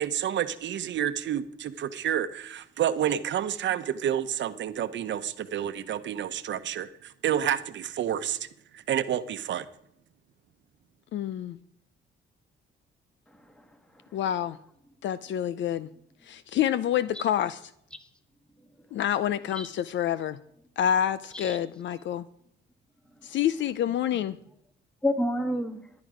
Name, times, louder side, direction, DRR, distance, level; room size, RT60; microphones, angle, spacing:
voice 1, 0.0-8.5 8.7-9.7, right 10 dB, 65° right, 11 dB, 0.9 m, -29 dB
voice 2, 11.1-11.6 14.1-14.6 15.0-15.9 16.2-17.6 18.9-20.4 20.8-22.2 23.2-24.4, left 10 dB, 70° left, 15 dB, 0.6 m, -27 dB
voice 3, 13.3-14.2 18.9-19.0 19.5-19.7 21.3-21.6 25.0-25.9, left 1 dB, 5° left, 7 dB, 1.4 m, -31 dB
14.5 x 10.5 x 5.0 m, 0.73 s
cardioid pair, 90°, 20 cm